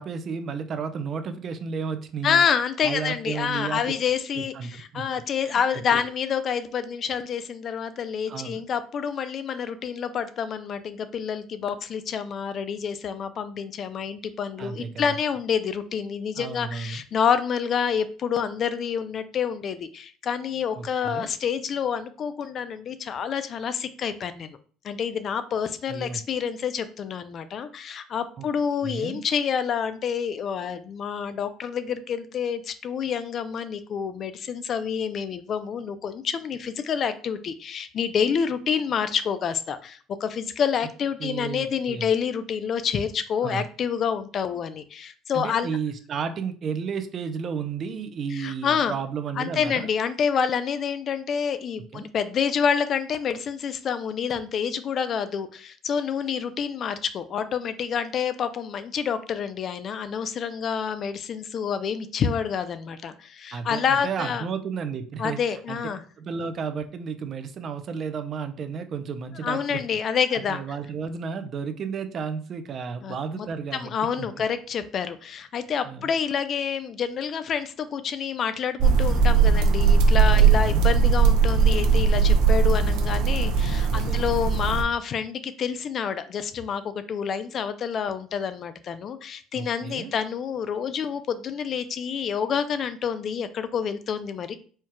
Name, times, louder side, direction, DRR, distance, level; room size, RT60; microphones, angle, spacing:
voice 1, 0.0-2.4 2.8-3.8 4.4-6.1 8.3-8.6 14.6-15.2 16.4-17.0 20.8-21.3 25.9-26.2 28.4-28.5 28.8-29.2 41.2-42.1 43.4-43.7 45.3-49.9 51.9-52.1 63.5-65.4 65.7-65.8 66.2-69.8 70.3-73.9 74.2-74.3 75.8-76.1 80.3-80.8 83.9-84.2 89.5-90.1, right 6 dB, 40° right, 9 dB, 0.5 m, -33 dB
voice 2, 2.2-24.6 24.8-45.7 48.3-48.9 49.4-64.4 65.2-66.0 69.4-70.6 73.0-73.5 73.7-94.6, left 7 dB, 40° left, 11 dB, 0.5 m, -28 dB
sound 1, 78.8-84.8, right 5 dB, 75° right, 0.7 m, -19 dB
4.4 x 2.4 x 4.5 m, 0.42 s
cardioid pair, 135°, 0 cm